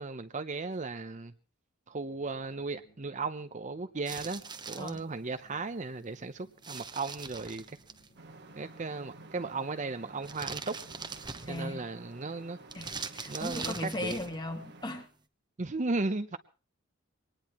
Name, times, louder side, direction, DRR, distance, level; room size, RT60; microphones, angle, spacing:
voice 1, 0.0-1.3 1.9-7.8 8.6-10.8 11.5-12.6 13.3-14.2 15.6-16.4, right 3 dB, 40° right, 10 dB, 0.8 m, -36 dB
sound 1, 2.0-11.4, right 1 dB, 50° left, 3.0 m, -64 dB
sound 2, 4.1-5.0 6.6-8.1 10.2-11.8 12.7-14.4, right 5 dB, 20° right, 1.0 m, -42 dB
sound 3, 8.2-15.1, right 2 dB, 55° right, 1.6 m, -52 dB
voice 2, 11.5-11.9 12.7-15.1, left 1 dB, 20° left, 5 dB, 2.1 m, -37 dB
23.0 x 19.0 x 3.1 m, 0.36 s
head